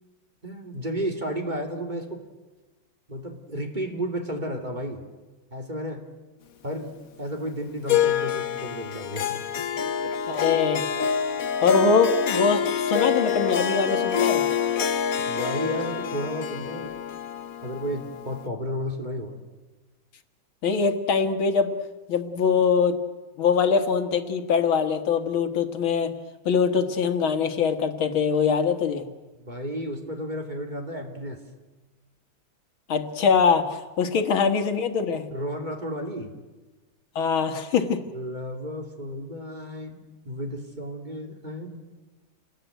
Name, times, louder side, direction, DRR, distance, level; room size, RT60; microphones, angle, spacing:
voice 1, 0.4-2.2 3.1-5.0 5.5-6.0 6.6-10.1 15.2-17.0 17.6-19.4 29.4-31.4 35.3-36.3 38.1-41.8, equal, 20° right, 3 dB, 2.8 m, -33 dB
Harp, 7.9-18.5, left 8 dB, 50° left, 1.2 m, -26 dB
voice 2, 10.3-10.8 11.6-14.5 20.6-21.8 22.1-23.0 23.4-26.1 26.5-29.1 32.9-35.3 37.2-38.0, left 5 dB, 85° left, 8 dB, 2.4 m, -23 dB
29.0 x 20.5 x 9.2 m, 1.2 s
omnidirectional pair, 2.2 m